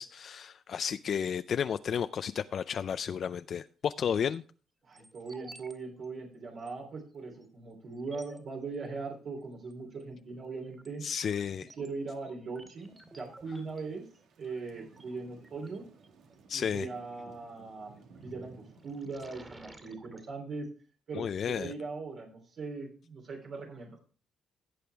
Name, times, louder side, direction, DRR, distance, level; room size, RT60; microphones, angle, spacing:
voice 1, 0.0-4.4 11.0-11.7 16.5-16.9 21.1-21.7, left 7 dB, 55° left, 0.4 m, -32 dB
sound 1, 3.9-4.4 4.9-5.7 6.0-6.1 6.6-6.7 7.4-7.5 7.9-8.4 9.6-10.0 10.4-16.4 18.0-18.3 18.7-20.3, right 2 dB, 20° right, 2.2 m, -55 dB
voice 2, 4.8-11.0 11.7-14.0 14.4-15.9 16.5-20.7 21.1-23.9, right 4 dB, 60° right, 3.2 m, -40 dB
Thunder / Rain, 12.8-19.1, right 4 dB, 80° right, 1.7 m, -57 dB
16.0 x 6.8 x 3.4 m
cardioid pair, 90°, 0 cm